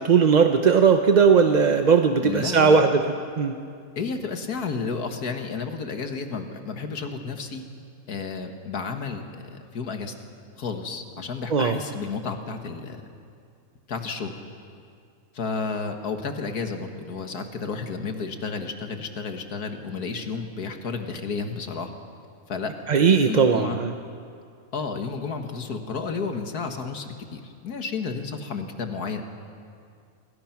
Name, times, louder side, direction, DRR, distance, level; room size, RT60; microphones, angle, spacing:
voice 1, 0.0-3.0 3.4-3.6 11.5-11.8 22.9-23.9, right 5 dB, 40° right, 6 dB, 0.7 m, -18 dB
voice 2, 2.2-2.8 4.0-7.6 8.1-10.1 10.6-13.0 13.9-14.3 15.3-21.9 22.5-22.7 23.3-23.8 24.7-29.2, left 5 dB, 85° left, 5 dB, 2.1 m, -31 dB
27.5 x 21.0 x 5.9 m, 2.3 s
omnidirectional pair, 1.6 m